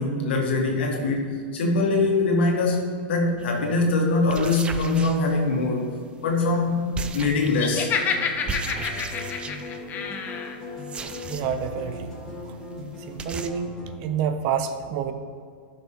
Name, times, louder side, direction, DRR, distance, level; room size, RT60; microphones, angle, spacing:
voice 1, 0.0-5.9 6.2-6.9 7.1-7.9, left 3 dB, 80° left, 1 dB, 1.8 m, -23 dB
sound 1, 3.4-3.6 4.2-5.7 6.9-7.8 8.5-9.8 10.8-11.7 12.0-12.1 12.4-12.5 12.7-12.8 13.2-13.5, right 5 dB, 20° right, 0.5 m, -36 dB
Laughter, 7.5-10.6, left 6 dB, 30° left, 0.8 m, -28 dB
sound 2, 7.8-14.0, left 2 dB, 10° left, 2.1 m, -37 dB
voice 2, 11.3-12.1 13.1-13.7 14.0-15.1, right 8 dB, 50° right, 9 dB, 0.7 m, -28 dB
12.0 x 6.0 x 3.0 m, 2.2 s
supercardioid pair, 135°, 6 cm